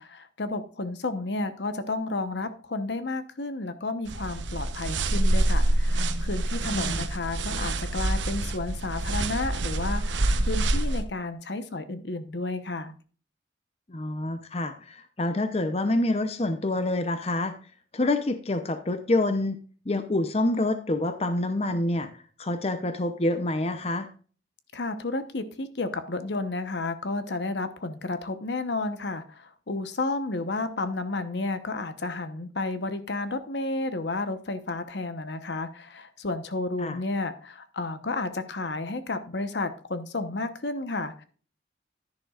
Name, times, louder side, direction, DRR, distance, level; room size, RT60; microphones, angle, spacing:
voice 1, 0.0-12.9 24.7-41.2, left 2 dB, 70° left, 10 dB, 1.0 m, -32 dB
sound 1, 4.1-11.0, right 1 dB, 85° right, 0.9 m, -26 dB
voice 2, 6.7-7.1 13.9-17.5 17.9-19.6 19.9-22.1 22.4-24.1 36.8-37.0, left 2 dB, 35° left, 9 dB, 0.7 m, -27 dB
10.5 x 10.5 x 2.4 m, 0.40 s
head